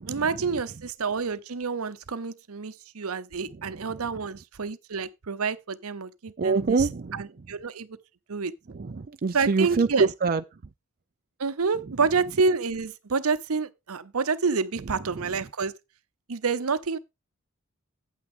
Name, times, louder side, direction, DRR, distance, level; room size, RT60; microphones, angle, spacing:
voice 1, 0.1-7.9 8.3-8.5 9.3-10.1 11.4-15.7 16.3-17.0, right 4 dB, 80° right, 0.8 m, -28 dB
voice 2, 6.4-7.2 8.8-10.4, right 4 dB, 45° right, 0.5 m, -25 dB
9.2 x 8.8 x 3.7 m
head